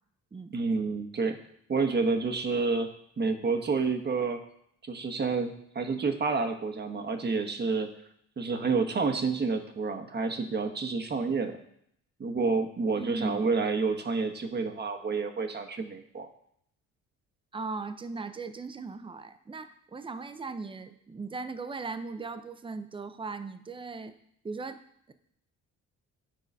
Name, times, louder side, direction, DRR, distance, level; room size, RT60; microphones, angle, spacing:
voice 1, 0.5-1.4 1.7-2.9 3.2-4.4 4.8-7.9 8.4-11.6 12.2-16.3, right 4 dB, 35° right, 5 dB, 1.1 m, -29 dB
voice 2, 12.9-13.4 17.5-24.1 24.4-24.8 25.1-25.2, right 4 dB, 15° right, 11 dB, 0.6 m, -38 dB
9.2 x 3.8 x 5.4 m, 0.70 s
cardioid pair, 90°, 30 cm